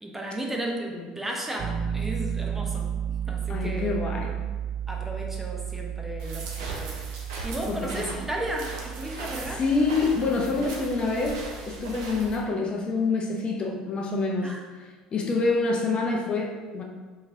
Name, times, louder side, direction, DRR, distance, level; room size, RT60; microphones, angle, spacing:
voice 1, 0.0-2.9 3.3-3.9 4.9-7.0 7.4-9.6 14.4-14.6, right 1 dB, 10° right, 0 dB, 0.6 m, -34 dB
Piano, 1.6-12.4, right 8 dB, 50° right, 0.3 m, -34 dB
voice 2, 3.5-4.4 7.7-8.1 9.1-16.8, left 3 dB, 40° left, 1 dB, 0.6 m, -27 dB
sound 1, 6.2-12.4, right 2 dB, 75° right, 0.7 m, -39 dB
2.9 x 2.8 x 3.7 m, 1.4 s
hypercardioid pair, 70°, 3 cm